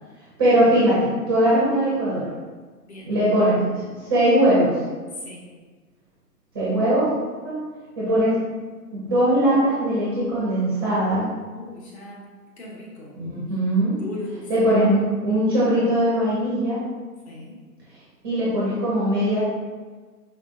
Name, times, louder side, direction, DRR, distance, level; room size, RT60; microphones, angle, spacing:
voice 1, 0.4-2.3 3.1-4.8 6.5-7.1 7.4-7.6 8.0-8.4 8.9-11.2 13.2-14.0 14.5-16.8 18.2-19.4, right 1 dB, 15° right, -9 dB, 0.6 m, -20 dB
voice 2, 5.1-5.5 11.5-12.3 12.6-13.2 14.0-14.7 17.2-17.7, left 1 dB, 40° left, -4 dB, 1.3 m, -38 dB
5.0 x 3.4 x 2.5 m, 1.4 s
figure-of-eight pair, 135°, 49 cm